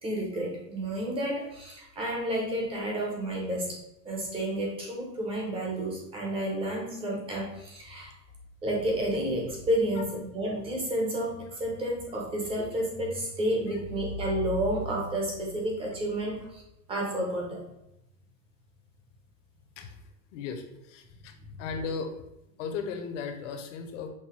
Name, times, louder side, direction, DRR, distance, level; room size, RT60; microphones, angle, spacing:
voice 1, 0.0-8.1 8.6-16.6 16.9-17.6, right 1 dB, 10° right, -1 dB, 0.6 m, -30 dB
voice 2, 20.3-21.3 21.6-22.2 22.6-24.1, left 5 dB, 50° left, 6 dB, 0.8 m, -36 dB
5.9 x 2.6 x 2.9 m, 0.86 s
supercardioid pair, 150°, 50 cm